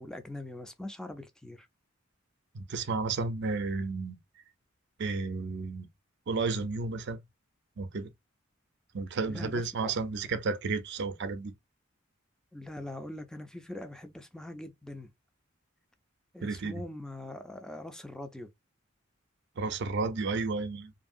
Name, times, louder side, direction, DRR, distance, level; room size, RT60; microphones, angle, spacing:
voice 1, 0.0-1.7 9.3-9.9 12.5-15.1 16.3-18.5, left 1 dB, 5° left, 0.4 m, -42 dB
voice 2, 2.5-4.2 5.0-5.9 6.3-7.2 7.8-8.1 8.9-11.5 16.4-16.8 19.6-20.9, right 4 dB, 60° right, 0.5 m, -32 dB
2.8 x 2.6 x 2.5 m
head